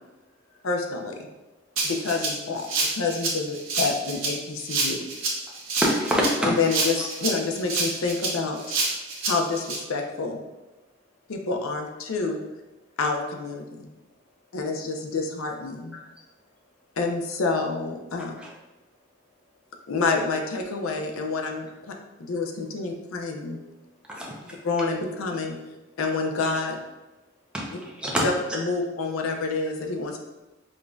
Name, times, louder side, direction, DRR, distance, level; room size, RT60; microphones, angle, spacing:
voice 1, 0.1-0.6 1.3-1.9 5.4-5.8 9.0-9.3 10.8-11.3 12.8-13.0 13.7-14.6 16.0-17.0 18.7-19.9 22.0-22.3 23.1-23.2 23.7-24.2 25.9-26.0 27.2-27.5, left 1 dB, 35° left, -4 dB, 0.8 m, -65 dB
voice 2, 0.6-1.2 1.8-5.0 6.4-8.6 9.2-10.4 11.3-12.4 13.0-13.9 14.5-16.0 17.0-18.3 19.9-23.6 24.6-25.6 26.0-26.8 27.7-27.8 28.2-30.2, left 4 dB, 90° left, 3 dB, 0.5 m, -28 dB
Rattle (instrument), 1.8-9.8, right 3 dB, 90° right, 0.9 m, -28 dB
voice 3, 5.8-6.5 7.0-7.1 15.9-16.0 18.4-18.5 24.1-24.6 27.5-28.3, equal, 5° right, -3 dB, 0.6 m, -26 dB
5.0 x 2.6 x 2.3 m, 1.1 s
head